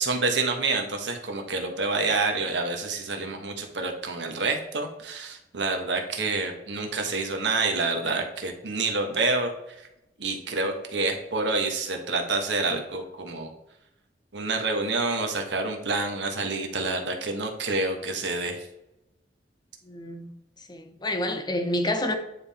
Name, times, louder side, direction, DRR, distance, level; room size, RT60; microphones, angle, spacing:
voice 1, 0.0-9.9 10.2-13.5 14.3-18.7, right 3 dB, 85° right, 1.3 m, -28 dB
voice 2, 19.9-20.3 20.7-22.1, left 1 dB, 25° left, 0.8 m, -28 dB
9.5 x 3.7 x 4.2 m
head